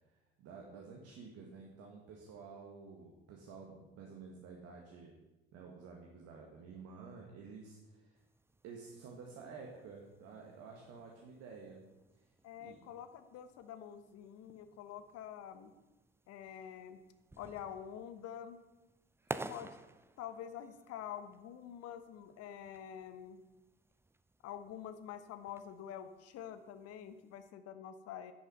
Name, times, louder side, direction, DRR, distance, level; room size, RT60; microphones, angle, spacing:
voice 1, 0.1-5.2 5.5-8.2 8.6-11.8 12.1-12.3 12.6-12.8 19.2-19.4, right 5 dB, 55° right, 0 dB, 2.0 m, -51 dB
sound 1, 8.2-27.5, right 2 dB, 10° right, 0.6 m, -54 dB
voice 2, 12.4-15.7 16.3-17.0 17.4-18.6 19.3-19.8 20.2-23.4 24.4-28.3, left 9 dB, 55° left, 10 dB, 1.2 m, -47 dB
10.5 x 9.9 x 5.5 m, 1.1 s
figure-of-eight pair, 55°, 30 cm